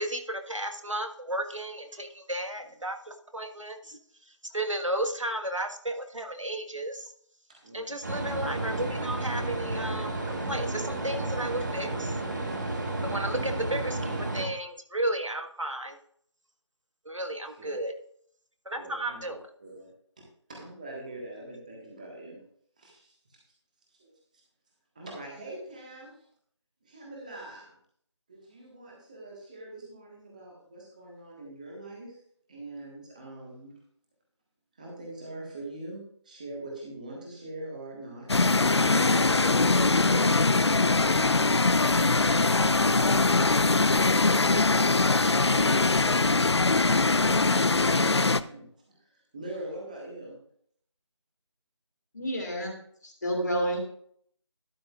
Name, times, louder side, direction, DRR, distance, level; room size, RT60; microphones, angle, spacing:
voice 1, 0.0-4.0 4.5-7.1 7.7-12.2 13.0-16.0 17.0-17.9 18.6-19.4, right 1 dB, 85° right, 5 dB, 1.5 m, -33 dB
voice 2, 7.6-7.9 17.6-17.7 18.7-19.2 19.6-19.9 20.5-22.4 22.8-23.4 24.0-24.1 24.9-26.1 26.8-27.8 28.3-32.2 32.5-33.7 34.7-38.5 38.7-39.4 47.2-48.6 49.0-50.4, right 2 dB, 15° right, -2 dB, 1.5 m, -43 dB
sound 1, 8.0-14.5, right 2 dB, 35° right, 1.5 m, -32 dB
sound 2, 38.3-48.4, left 3 dB, 60° left, 0.5 m, -22 dB
voice 3, 52.1-52.7 53.0-53.8, equal, 35° left, 1 dB, 2.2 m, -29 dB
12.0 x 9.6 x 2.4 m, 0.63 s
figure-of-eight pair, 170°, 16 cm